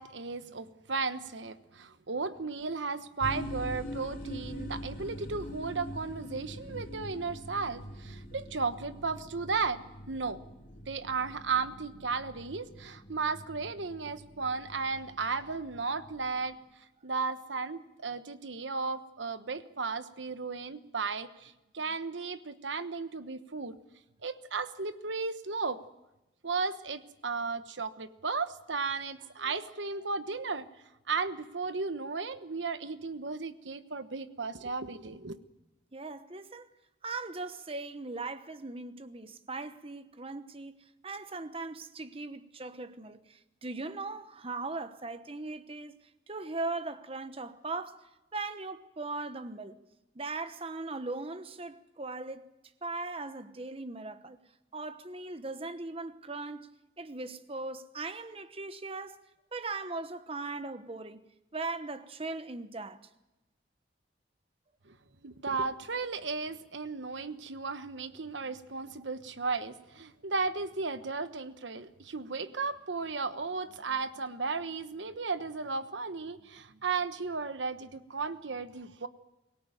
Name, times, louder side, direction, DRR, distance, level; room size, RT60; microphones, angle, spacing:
voice 1, 0.0-9.8 10.1-10.4 10.9-16.6 17.0-23.7 24.2-25.8 26.4-30.7 31.1-35.4 64.9-65.0 65.2-79.1, right 4 dB, 80° right, 1.2 m, -35 dB
sound 1, 3.2-16.5, equal, 50° left, 2.4 m, -44 dB
voice 2, 35.9-36.7 37.0-40.8 41.0-46.0 46.3-48.0 48.3-49.8 50.1-52.5 52.8-54.4 54.7-56.7 57.0-59.2 59.5-61.3 61.5-63.0, right 3 dB, 30° right, 1.0 m, -39 dB
23.5 x 17.5 x 9.2 m
head